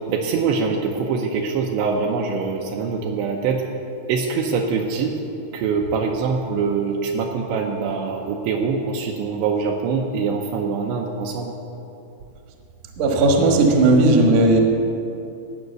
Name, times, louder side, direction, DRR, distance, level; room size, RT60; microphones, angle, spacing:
voice 1, 0.1-3.6 4.1-5.2 5.5-11.5, right 5 dB, 80° right, 1 dB, 2.7 m, -24 dB
voice 2, 13.0-14.6, right 2 dB, 65° right, 1 dB, 2.1 m, -15 dB
16.5 x 6.1 x 7.9 m, 2.8 s
omnidirectional pair, 5.4 m